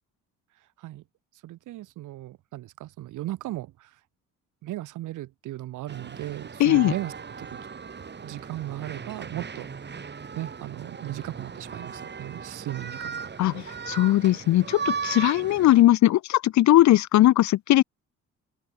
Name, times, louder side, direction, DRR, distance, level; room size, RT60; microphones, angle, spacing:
voice 1, 1.4-3.9 4.6-7.1 7.4-7.6 8.2-9.7 10.4-13.3, right 15 dB, 80° right, 1.3 m, -36 dB
sound 1, 5.9-15.8, right 6 dB, 35° right, 2.6 m, -37 dB
voice 2, 6.6-6.9 13.4-17.8, left 14 dB, 70° left, 0.7 m, -19 dB
open air
cardioid pair, 90°, 30 cm